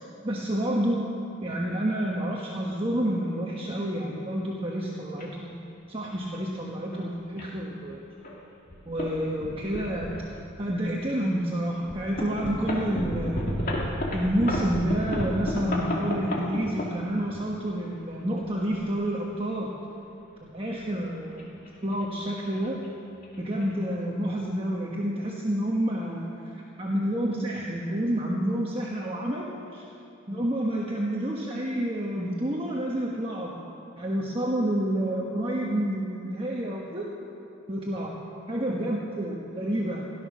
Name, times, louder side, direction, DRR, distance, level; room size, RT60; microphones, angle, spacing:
voice 1, 0.2-1.1 1.4-8.0 8.9-10.1 10.6-13.9 14.1-19.7 20.4-21.5 21.8-22.8 23.4-29.8 30.3-33.5 34.0-37.1 37.7-38.2 38.5-40.1, right 1 dB, 25° right, -2 dB, 1.1 m, -29 dB
sound 1, 5.2-5.3 6.1-6.4 6.9-7.0 7.4-7.5 8.2-8.4 8.7-9.1 9.4-10.7 11.2-11.3 11.9-17.4 18.3-19.2 20.9-22.0 22.3-22.6 22.8-22.9 23.2-23.6, left 1 dB, 45° left, 2.2 m, -32 dB
17.0 x 12.0 x 6.1 m, 2.9 s
head